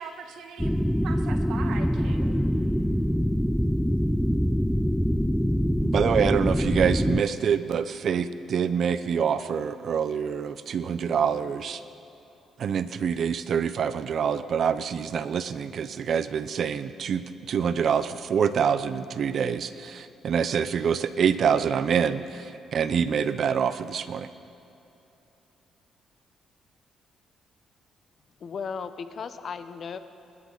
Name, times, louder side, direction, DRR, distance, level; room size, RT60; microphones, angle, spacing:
voice 1, 0.0-2.4, right 6 dB, 80° right, 6 dB, 1.5 m, -41 dB
sound 1, 0.6-7.2, equal, ahead, 0.4 m, -24 dB
voice 2, 5.8-11.8 12.6-24.3, right 7 dB, 60° right, 13 dB, 0.7 m, -26 dB
voice 3, 28.4-30.0, left 6 dB, 55° left, 11 dB, 0.9 m, -35 dB
25.5 x 12.0 x 4.0 m, 2.9 s
cardioid pair, 90°, 0 cm